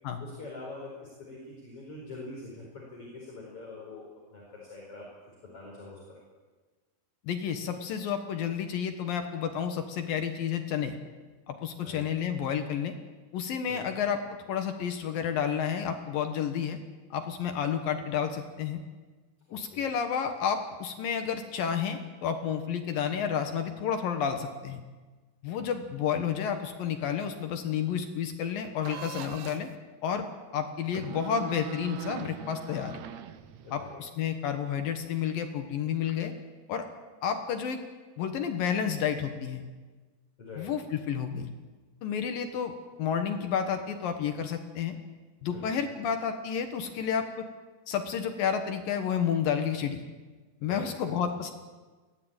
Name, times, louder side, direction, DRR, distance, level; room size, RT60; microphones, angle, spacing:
voice 1, 0.2-5.1 5.4-6.2 11.8-12.1 13.7-14.0 19.5-19.9 25.4-25.7 33.6-34.0 40.4-40.7 45.5-45.8 50.6-51.2, left 3 dB, 35° left, -4 dB, 5.6 m, -44 dB
voice 2, 7.2-11.0 11.5-12.9 13.3-14.2 14.5-16.8 17.1-18.8 19.5-24.8 25.4-29.7 30.0-33.0 33.7-36.3 36.7-36.9 37.2-37.8 38.2-39.6 40.6-41.5 42.0-45.0 45.4-47.5 47.9-50.0 50.6-51.5, left 8 dB, 65° left, 6 dB, 2.9 m, -31 dB
sound 1, 28.8-29.8 30.8-33.9, right 10 dB, 90° right, 1.5 m, -42 dB
22.5 x 16.5 x 8.9 m, 1.3 s
omnidirectional pair, 4.6 m